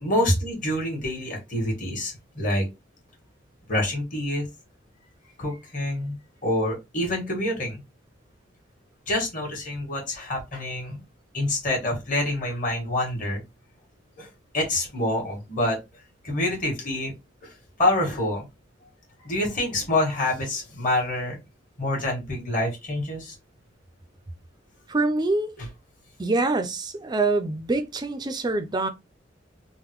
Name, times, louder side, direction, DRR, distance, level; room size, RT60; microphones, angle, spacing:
voice 1, 0.0-2.6 3.7-4.5 5.4-6.2 6.4-7.8 9.1-11.0 11.3-13.4 14.2-15.8 16.2-17.1 17.4-17.5 17.8-18.5 19.2-21.4 21.8-23.3, left 1 dB, 45° left, 1.4 m, -27 dB
voice 2, 24.9-25.5 26.2-28.9, right 2 dB, 20° right, 0.4 m, -25 dB
3.6 x 2.1 x 3.0 m
head